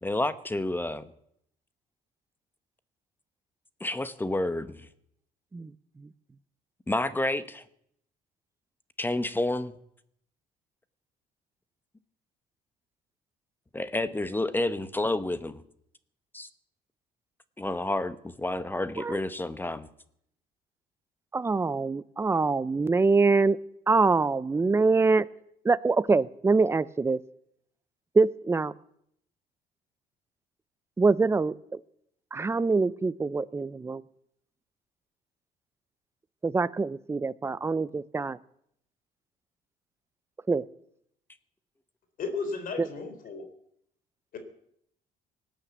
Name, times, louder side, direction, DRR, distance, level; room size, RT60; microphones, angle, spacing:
voice 1, 0.0-1.0 3.8-4.9 6.9-7.6 9.0-9.7 13.7-15.6 16.3-16.5 17.6-19.9, left 2 dB, 10° left, 13 dB, 0.9 m, -29 dB
voice 2, 21.3-23.6 23.9-25.2 25.6-27.2 28.1-28.7 31.0-31.8 32.3-34.0 36.4-38.4 40.5-40.6 42.8-42.9, right 4 dB, 15° right, 17 dB, 0.6 m, -24 dB
voice 3, 42.2-43.5 44.3-44.4, left 4 dB, 55° left, 8 dB, 3.7 m, -34 dB
18.5 x 8.9 x 8.2 m, 0.72 s
cardioid pair, 110°, 17 cm